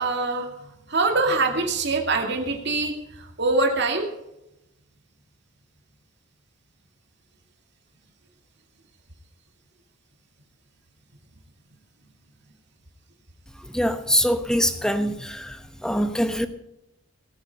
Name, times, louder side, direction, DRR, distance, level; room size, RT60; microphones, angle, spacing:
voice 1, 0.0-4.1, right 3 dB, 55° right, 2 dB, 2.3 m, -24 dB
voice 2, 13.7-15.6 15.8-16.5, equal, 5° left, 9 dB, 1.0 m, -23 dB
18.0 x 9.2 x 5.3 m, 0.88 s
head